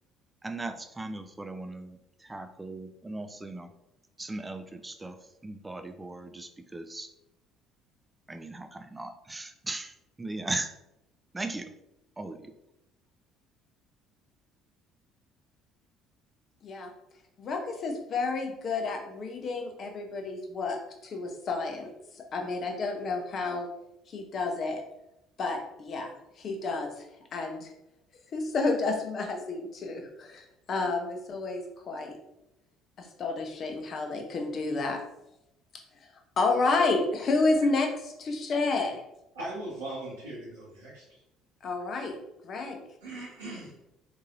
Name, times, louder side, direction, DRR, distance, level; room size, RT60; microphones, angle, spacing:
voice 1, 0.4-3.7 4.2-5.2 5.4-7.1 8.3-10.7 11.3-11.7 12.2-12.5, right 2 dB, 15° right, 7 dB, 0.4 m, -38 dB
voice 2, 17.4-21.9 22.3-23.7 24.1-24.8 25.4-26.1 26.4-27.1 27.3-27.7 28.3-32.1 33.0-35.0 36.4-37.9 38.2-39.0 41.6-42.2 42.4-42.8, left 3 dB, 45° left, 4 dB, 0.6 m, -30 dB
voice 3, 39.3-41.0 43.0-43.8, right 1 dB, 80° right, -8 dB, 1.0 m, -39 dB
3.9 x 2.7 x 2.5 m, 0.87 s
figure-of-eight pair, 55°, 0 cm